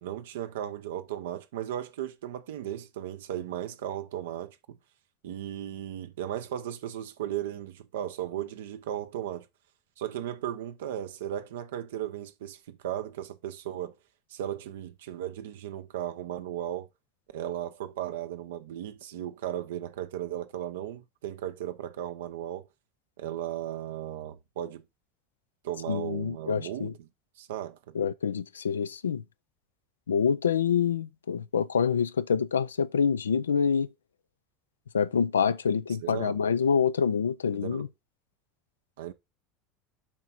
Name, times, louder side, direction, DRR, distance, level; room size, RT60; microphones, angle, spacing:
voice 1, 0.0-4.8 5.2-9.5 10.0-14.0 14.3-16.9 17.3-22.7 23.2-24.8 25.6-27.1 27.4-28.0 36.0-36.4 37.5-37.9 39.0-39.1, right 11 dB, 75° right, 0.8 m, -36 dB
voice 2, 25.9-26.9 27.9-29.2 30.1-33.9 34.9-37.9, left 6 dB, 90° left, 0.4 m, -26 dB
7.3 x 4.8 x 4.1 m
hypercardioid pair, 80°, 0 cm